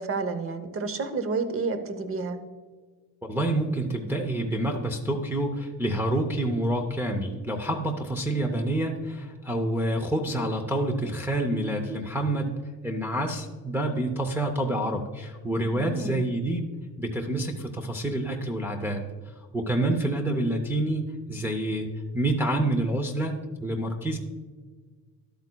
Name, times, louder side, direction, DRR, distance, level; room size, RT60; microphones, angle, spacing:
voice 1, 0.0-2.4 15.7-16.2, right 4 dB, 35° right, 9 dB, 0.8 m, -30 dB
voice 2, 3.2-16.7 17.0-19.0 19.5-21.9 22.1-23.4 23.6-24.2, right 1 dB, 5° right, 0 dB, 0.5 m, -27 dB
12.0 x 8.1 x 2.2 m, 1.4 s
cardioid pair, 170°, 40 cm